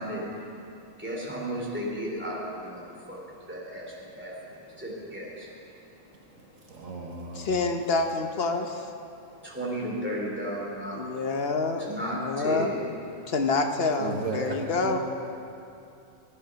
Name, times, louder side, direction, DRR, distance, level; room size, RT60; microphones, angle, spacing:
voice 1, 0.0-7.5 9.1-11.4 11.8-12.9 13.2-13.3, equal, 10° right, -4 dB, 2.9 m, -35 dB
voice 2, 6.7-7.5 14.0-15.0, right 3 dB, 75° right, 0 dB, 1.5 m, -34 dB
voice 3, 7.3-8.9 10.9-11.8 12.1-12.7 13.3-15.0, left 3 dB, 50° left, 5 dB, 1.0 m, -27 dB
16.5 x 8.8 x 5.7 m, 2.6 s
omnidirectional pair, 1.4 m